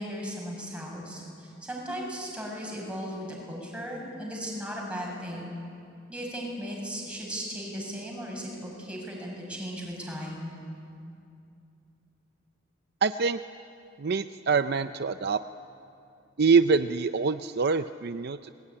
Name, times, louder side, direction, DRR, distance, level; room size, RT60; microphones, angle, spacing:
voice 1, 0.0-5.6 6.1-10.5, equal, 5° right, -2 dB, 7.3 m, -36 dB
voice 2, 13.0-13.4 14.0-15.4 16.4-18.5, right 5 dB, 55° right, 10 dB, 0.6 m, -25 dB
28.0 x 22.0 x 9.9 m, 2.5 s
head